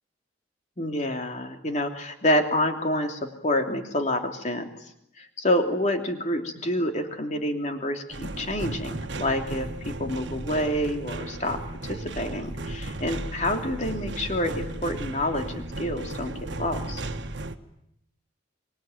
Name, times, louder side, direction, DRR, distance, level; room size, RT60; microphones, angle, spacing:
voice 1, 0.8-4.7 5.2-17.0, left 1 dB, 35° left, 4 dB, 3.0 m, -28 dB
sound 1, 8.1-17.6, right 2 dB, 65° right, 1.6 m, -35 dB
26.0 x 23.5 x 9.4 m, 0.79 s
head